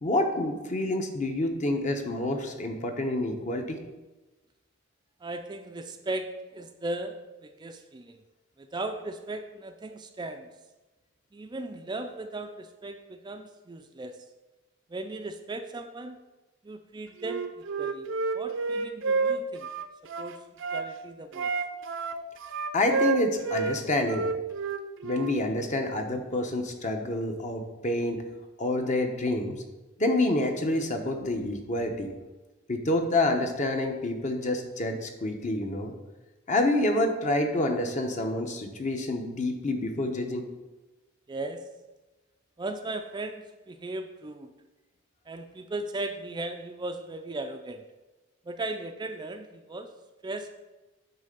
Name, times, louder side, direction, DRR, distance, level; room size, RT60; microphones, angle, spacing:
voice 1, 0.0-3.8 22.7-24.3 25.0-28.2 28.6-29.5 30.0-32.1 32.7-35.9 36.5-40.5, left 1 dB, 35° left, 4 dB, 0.9 m, -28 dB
voice 2, 5.2-8.2 8.6-10.5 11.3-14.2 14.9-16.2 16.6-18.1 18.3-19.7 20.2-20.4 20.7-21.5 41.3-41.6 42.6-44.5 45.3-47.8 48.4-49.9 50.2-50.5, right 2 dB, 20° right, 6 dB, 0.4 m, -37 dB
Wind instrument woodwind instrument, 17.2-20.9 21.3-23.8 24.0-25.4, right 4 dB, 65° right, 0.6 m, -29 dB
8.9 x 3.3 x 6.7 m, 1.1 s
head